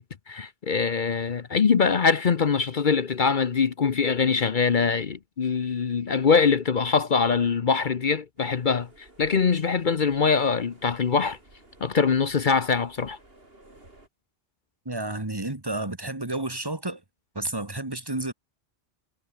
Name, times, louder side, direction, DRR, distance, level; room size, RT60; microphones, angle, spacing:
voice 1, 0.0-11.4 11.8-13.2, left 5 dB, 50° left, 1.0 m, -23 dB
sound 1, 8.4-14.1, right 2 dB, 70° right, 5.5 m, -54 dB
voice 2, 14.9-17.0 17.4-18.3, right 2 dB, 20° right, 2.1 m, -31 dB
omnidirectional pair, 1.1 m